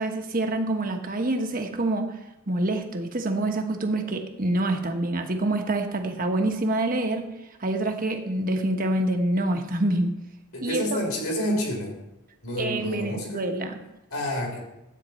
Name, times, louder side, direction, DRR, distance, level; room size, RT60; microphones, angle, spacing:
voice 1, 0.0-2.2 2.5-7.3 7.6-10.1 10.6-11.0 12.6-13.8, right 1 dB, 40° right, 5 dB, 1.2 m, -26 dB
voice 2, 10.5-11.9 12.4-13.4 14.1-14.6, equal, 70° left, 0 dB, 3.7 m, -29 dB
13.0 x 8.8 x 4.3 m, 0.93 s
head